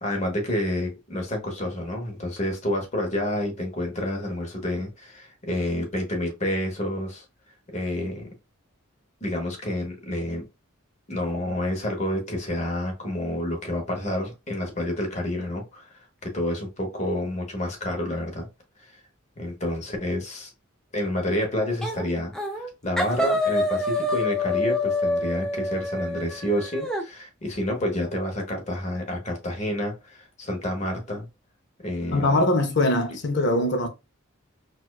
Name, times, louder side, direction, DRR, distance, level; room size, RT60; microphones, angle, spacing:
voice 1, 0.0-7.2 7.7-8.3 9.2-10.5 11.1-15.9 16.2-18.5 18.8-18.9 19.4-20.5 20.9-31.3 31.8-32.4, left 1 dB, 35° left, 0.9 m, -29 dB
sound 1, 21.8-22.1 22.3-22.7 23.0-27.0, left 2 dB, 5° left, 0.4 m, -26 dB
voice 2, 32.1-33.9, left 1 dB, 55° left, 0.6 m, -22 dB
4.2 x 2.4 x 2.3 m
head